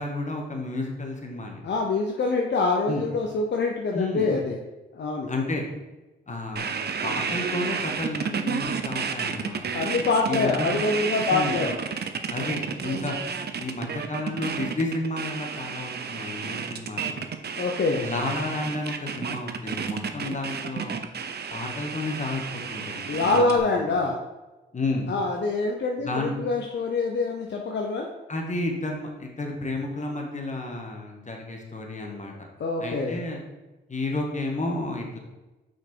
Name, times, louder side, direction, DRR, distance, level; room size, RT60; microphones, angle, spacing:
voice 1, 0.0-1.6 2.8-3.1 3.9-4.3 5.3-5.6 6.3-6.7 7.0-9.6 10.3-10.9 11.3-11.7 12.3-13.2 13.6-17.2 18.0-21.0 21.5-23.9 24.7-25.1 26.0-26.3 28.3-32.3 32.8-33.4 33.9-35.2, left 2 dB, 35° left, 1 dB, 1.7 m, -31 dB
voice 2, 1.6-4.6 5.0-5.3 9.7-11.8 17.6-18.0 23.1-24.2 25.1-28.1 32.0-32.1 32.6-33.2, left 3 dB, 60° left, 1 dB, 0.8 m, -25 dB
sound 1, 6.6-23.6, right 6 dB, 50° right, 0.7 m, -31 dB
5.7 x 4.6 x 4.6 m, 1.1 s
supercardioid pair, 50°, 21 cm